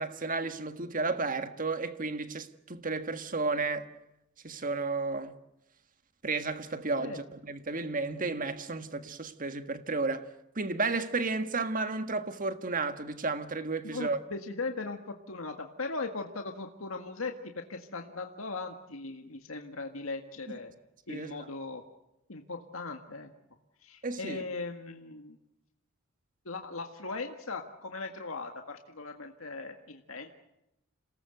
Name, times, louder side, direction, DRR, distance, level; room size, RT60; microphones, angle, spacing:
voice 1, 0.0-3.9 4.4-5.3 6.2-10.3 10.6-14.2 20.5-20.6 21.1-21.5 24.0-24.4, right 3 dB, 40° right, 1.6 m, -32 dB
voice 2, 13.8-20.7 21.1-21.8 22.3-23.3 23.8-25.4 26.5-30.3, left 3 dB, 85° left, 1.8 m, -39 dB
27.5 x 19.0 x 7.9 m
head